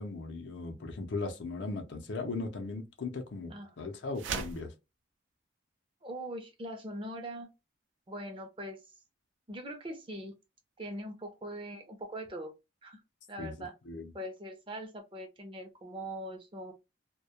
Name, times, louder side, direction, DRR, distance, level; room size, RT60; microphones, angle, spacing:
voice 1, 0.0-4.7 13.4-13.5 13.9-14.1, left 3 dB, 70° left, 0.5 m, -38 dB
sound 1, 4.1-4.7, right 5 dB, 85° right, 0.4 m, -36 dB
voice 2, 6.0-7.5 8.1-8.8 9.5-10.3 10.8-12.5 12.8-13.0 13.3-13.7 14.1-16.7, right 1 dB, 25° right, 0.5 m, -41 dB
2.2 x 2.0 x 2.8 m
head